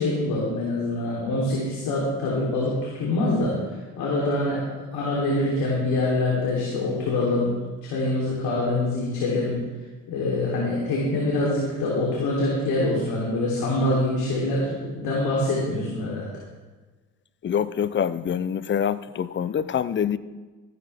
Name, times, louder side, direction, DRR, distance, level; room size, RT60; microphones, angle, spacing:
voice 1, 0.0-4.6 4.9-7.5 7.8-9.5 10.1-16.2, left 2 dB, 75° left, -4 dB, 3.4 m, -25 dB
voice 2, 17.4-20.2, left 8 dB, 30° left, 16 dB, 0.6 m, -25 dB
14.0 x 12.5 x 3.5 m, 1.3 s
cardioid pair, 95°, 37 cm